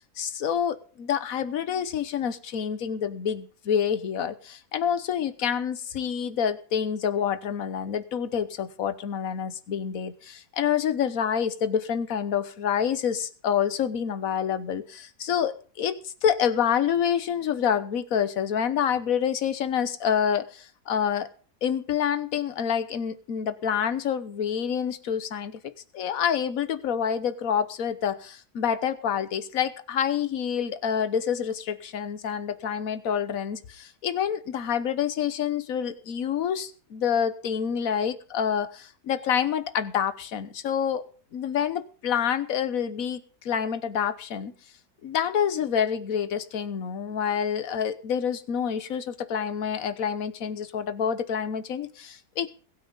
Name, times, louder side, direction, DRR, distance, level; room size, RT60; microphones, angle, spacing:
voice 1, 0.0-21.3 21.6-41.0 41.3-44.5 45.0-52.5, left 8 dB, 60° left, 13 dB, 1.4 m, -27 dB
21.5 x 8.8 x 3.9 m, 0.41 s
omnidirectional pair, 1.7 m